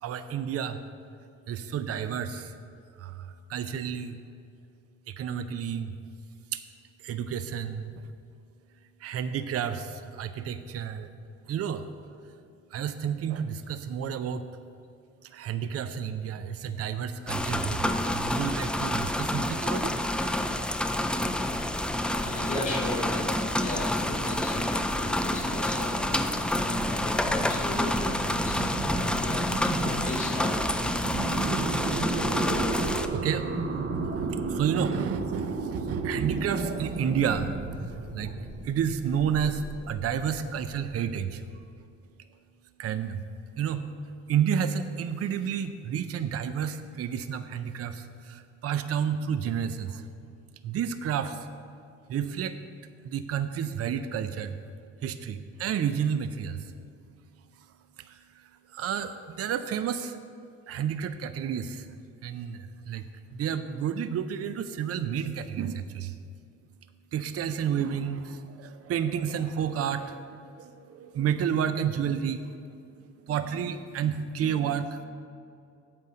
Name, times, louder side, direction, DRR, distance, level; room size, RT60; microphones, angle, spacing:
voice 1, 0.0-0.8 1.5-2.5 3.0-4.2 5.1-5.9 6.5-6.6 7.0-8.1 9.0-11.1 11.5-11.8 12.7-14.4 15.2-19.9 33.1-33.5 33.9-37.6 38.1-38.3 38.6-41.4 42.8-43.2 43.6-43.9 44.3-50.0 50.6-51.5 52.1-52.6 53.0-54.6 55.0-56.7 58.1-58.2 58.7-60.2 60.7-61.9 62.2-63.0 63.3-66.1 67.1-72.6 73.3-75.0, right 8 dB, 50° right, 11 dB, 0.5 m, -30 dB
sound 1, 17.3-33.1, left 1 dB, 5° left, 0.4 m, -28 dB
voice 2, 22.2-30.5, left 1 dB, 25° left, -1 dB, 2.3 m, -36 dB
sound 2, 24.3-41.6, right 3 dB, 35° right, 0.9 m, -34 dB
8.1 x 5.4 x 6.4 m, 2.5 s
cardioid pair, 90°, 30 cm